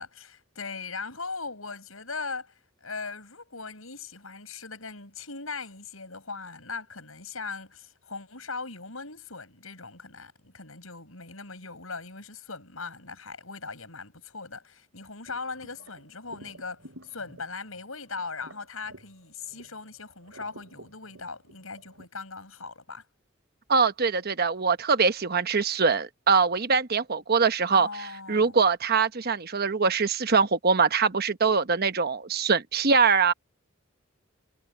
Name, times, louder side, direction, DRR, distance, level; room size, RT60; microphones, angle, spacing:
voice 1, 0.0-23.0 27.7-28.6, left 4 dB, 90° left, 7.9 m, -39 dB
sound 1, 15.3-19.9 20.2-22.1, right 1 dB, 70° right, 5.6 m, -51 dB
voice 2, 23.7-33.3, right 5 dB, 50° right, 1.1 m, -23 dB
head